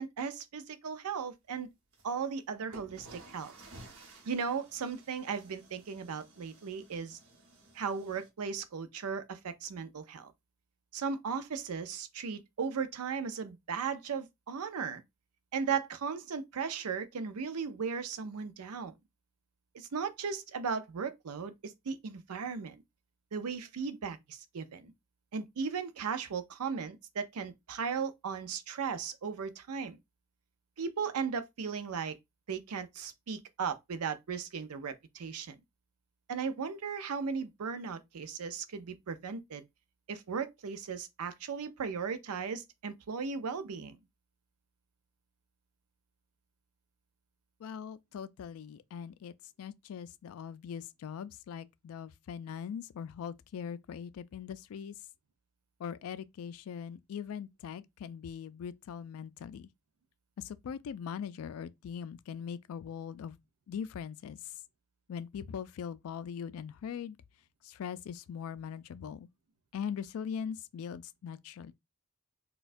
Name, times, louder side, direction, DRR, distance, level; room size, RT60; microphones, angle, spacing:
voice 1, 0.0-1.7 2.0-3.5 4.3-7.2 7.7-10.3 10.9-15.0 15.5-18.9 19.7-22.8 23.3-24.9 25.3-30.0 30.8-32.2 32.5-35.6 36.3-39.6 40.1-44.0, right 6 dB, 90° right, 0.5 m, -36 dB
sound 1, 1.9-2.0 2.7-8.3, right 2 dB, 65° right, 1.1 m, -54 dB
voice 2, 47.6-54.9 55.8-59.7 60.4-63.4 63.7-64.4 65.1-67.2 67.6-69.3 69.7-71.7, left 7 dB, 75° left, 0.3 m, -41 dB
4.2 x 2.2 x 2.5 m
head